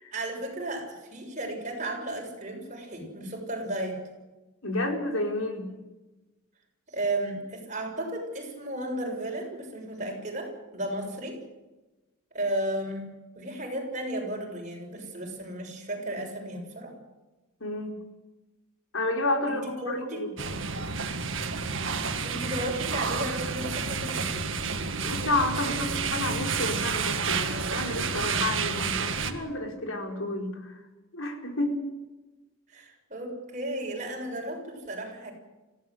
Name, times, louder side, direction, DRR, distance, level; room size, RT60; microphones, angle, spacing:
voice 1, 0.1-4.0 6.9-11.4 12.3-16.9 19.5-20.3 22.2-24.3 32.7-35.3, right 1 dB, 35° right, 1 dB, 6.9 m, -34 dB
voice 2, 4.6-5.7 17.6-17.9 18.9-20.3 25.0-30.8 31.1-31.8, left 2 dB, 75° left, 2 dB, 4.7 m, -30 dB
sound 1, 20.4-29.3, right 5 dB, 65° right, 2.0 m, -30 dB
26.0 x 16.5 x 8.0 m, 1.1 s
head